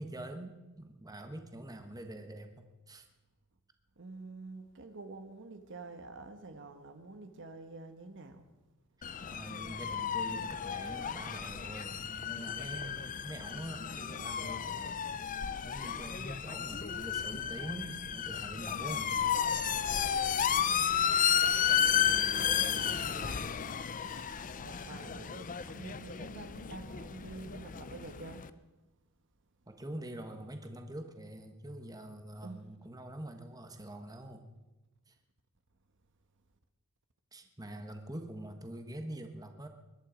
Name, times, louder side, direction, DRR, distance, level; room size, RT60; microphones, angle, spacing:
voice 1, 0.0-3.1 9.2-15.1 15.4-19.2 29.7-34.5 35.1-35.2 37.3-39.7, right 1 dB, 15° right, 6 dB, 1.2 m, -45 dB
voice 2, 4.0-8.5 20.0-21.0 21.7-23.6 24.6-28.4 32.4-32.7, right 3 dB, 55° right, 8 dB, 1.2 m, -48 dB
sound 1, 9.0-28.5, left 8 dB, 35° left, 0.5 m, -33 dB
22.0 x 11.5 x 5.1 m, 1.1 s
head